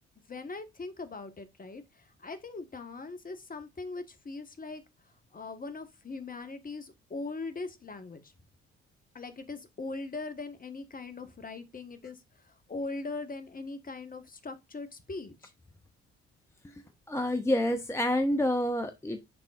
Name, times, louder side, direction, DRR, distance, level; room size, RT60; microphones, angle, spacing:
voice 1, 0.3-4.8 5.3-8.3 9.1-12.2 12.4-15.5, left 3 dB, 25° left, 1.3 m, -40 dB
voice 2, 16.6-19.2, left 1 dB, 10° left, 0.7 m, -28 dB
10.5 x 3.8 x 2.4 m
hypercardioid pair, 45°, 33 cm